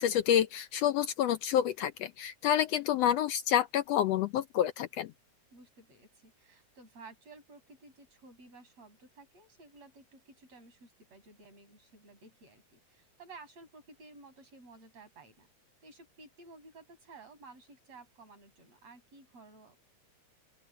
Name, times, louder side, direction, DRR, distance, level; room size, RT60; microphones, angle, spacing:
voice 1, 0.0-5.1, left 10 dB, 75° left, 1.5 m, -28 dB
voice 2, 5.5-15.5 15.8-19.8, right 3 dB, 55° right, 7.8 m, -54 dB
open air
omnidirectional pair, 3.4 m